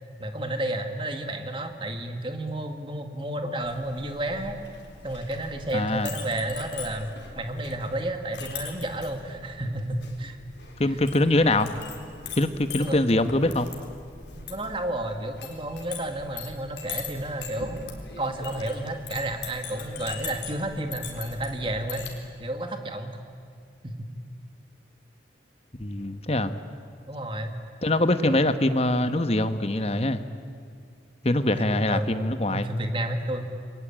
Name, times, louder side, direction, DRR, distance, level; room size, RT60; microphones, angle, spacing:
voice 1, 0.2-4.7 5.0-7.1 7.4-10.4 12.8-13.1 14.4-17.8 18.2-22.1 22.4-23.2 23.8-24.1 27.1-27.6 28.2-28.6 31.2-32.1 32.5-33.5, right 1 dB, 30° right, 5 dB, 2.0 m, -31 dB
Chink clink, 3.6-22.2, left 5 dB, 75° left, 4.0 m, -41 dB
voice 2, 5.7-6.1 10.8-11.7 12.4-13.7 25.8-26.5 27.8-30.2 31.2-32.7, left 1 dB, 35° left, 10 dB, 1.1 m, -23 dB
29.5 x 22.0 x 8.8 m, 2.2 s
head